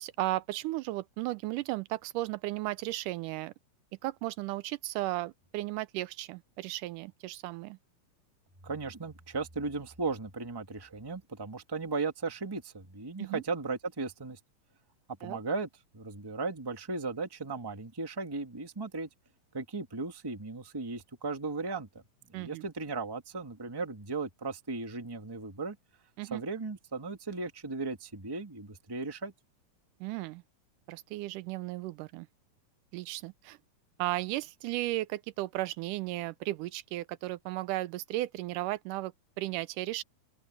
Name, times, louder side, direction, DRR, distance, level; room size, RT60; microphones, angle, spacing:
voice 1, 0.0-3.5 4.0-7.8 13.2-13.4 15.2-15.4 22.3-22.6 26.2-26.4 30.0-30.4 30.9-32.3 32.9-33.6 34.0-40.0, right 17 dB, 80° right, 2.1 m, -35 dB
voice 2, 8.6-14.4 15.2-15.7 15.9-19.1 19.5-21.9 22.3-25.8 26.3-29.3, right 3 dB, 10° right, 1.1 m, -36 dB
open air
omnidirectional pair, 3.7 m